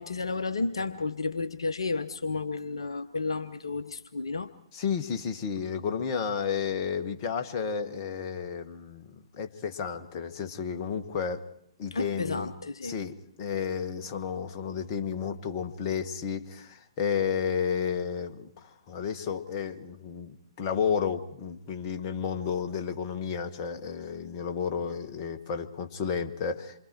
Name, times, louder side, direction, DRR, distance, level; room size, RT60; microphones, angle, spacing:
voice 1, 0.0-4.5 11.9-12.9, left 3 dB, 70° left, 11 dB, 0.9 m, -32 dB
voice 2, 4.7-11.5 11.8-12.5 12.8-18.5 18.9-26.7, left 6 dB, 35° left, 7 dB, 1.6 m, -32 dB
27.5 x 24.5 x 4.7 m, 0.72 s
figure-of-eight pair, 120°, 3 cm